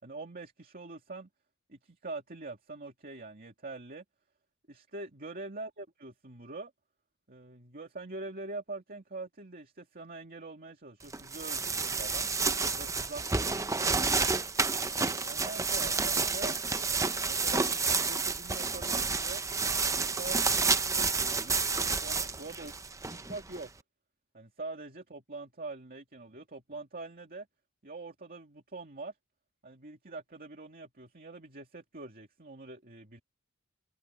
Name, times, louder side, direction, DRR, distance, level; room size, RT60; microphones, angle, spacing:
voice 1, 0.0-1.3 1.7-4.0 4.7-6.7 7.3-12.3 12.7-14.0 14.6-16.5 17.3-19.4 19.9-21.6 22.0-22.7 23.0-23.7 24.3-27.5 27.8-29.2 29.6-33.2, right 3 dB, 45° right, 2.6 m, -44 dB
sound 1, 11.1-23.6, right 4 dB, 15° right, 0.7 m, -30 dB
head